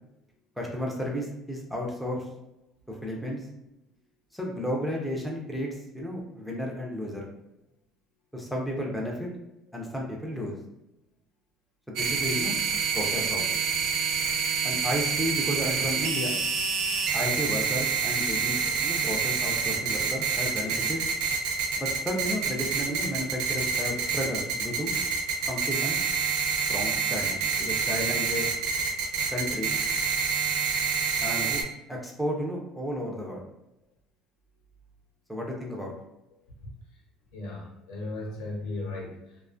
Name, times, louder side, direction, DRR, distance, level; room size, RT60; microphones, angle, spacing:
voice 1, 0.6-2.3 2.9-3.4 4.3-5.7 5.9-7.3 8.3-9.3 9.7-10.6 11.9-12.6 12.9-13.6 14.6-16.4 17.1-21.0 21.8-24.9 25.5-26.0 26.7-28.5 29.3-29.8 31.2-31.6 31.9-33.4 35.3-35.9, equal, ahead, -2 dB, 0.4 m, -32 dB
sound 1, 12.0-31.6, right 6 dB, 75° right, 0.4 m, -27 dB
voice 2, 37.3-39.4, left 2 dB, 80° left, -2 dB, 0.8 m, -36 dB
2.4 x 2.3 x 2.4 m, 0.88 s
cardioid pair, 170°, 0 cm